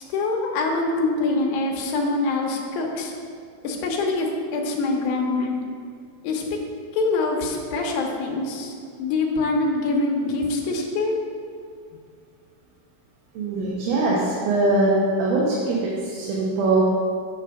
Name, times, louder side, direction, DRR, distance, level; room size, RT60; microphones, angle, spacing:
voice 1, 0.1-3.1 3.6-5.6 6.2-6.6 6.9-8.7 9.0-11.1, left 3 dB, 70° left, 0 dB, 2.2 m, -24 dB
voice 2, 13.3-14.9 15.2-16.8, right 2 dB, 80° right, -5 dB, 2.9 m, -22 dB
8.7 x 3.9 x 6.8 m, 2.2 s
omnidirectional pair, 4.3 m